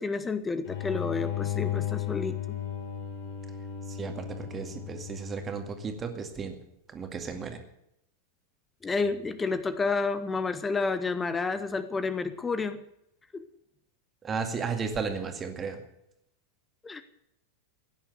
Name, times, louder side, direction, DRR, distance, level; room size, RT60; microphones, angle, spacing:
voice 1, 0.0-2.6 8.8-12.8 13.3-13.4 16.8-17.0, left 4 dB, 15° left, 12 dB, 1.0 m, -30 dB
sound 1, 0.6-6.0, left 11 dB, 50° left, 4.0 m, -35 dB
voice 2, 3.9-6.6 6.9-7.6 14.2-15.8, right 5 dB, 20° right, 6 dB, 2.2 m, -34 dB
16.5 x 10.0 x 8.0 m, 0.79 s
figure-of-eight pair, 90°, 0 cm